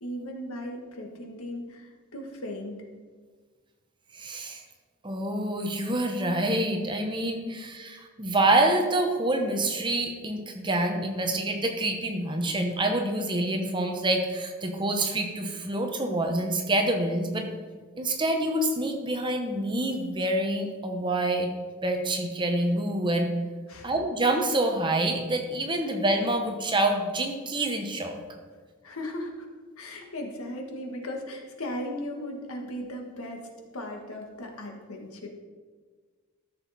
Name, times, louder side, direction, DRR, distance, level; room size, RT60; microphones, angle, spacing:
voice 1, 0.0-2.9 7.4-7.7 23.7-23.9 28.8-29.5 29.8-33.5 33.7-35.3, left 1 dB, 75° left, 2 dB, 1.5 m, -37 dB
voice 2, 4.1-4.6 5.0-17.5 18.0-21.5 21.8-23.3 23.8-28.2, right 1 dB, 20° right, 4 dB, 0.9 m, -27 dB
13.0 x 6.3 x 4.2 m, 1.5 s
head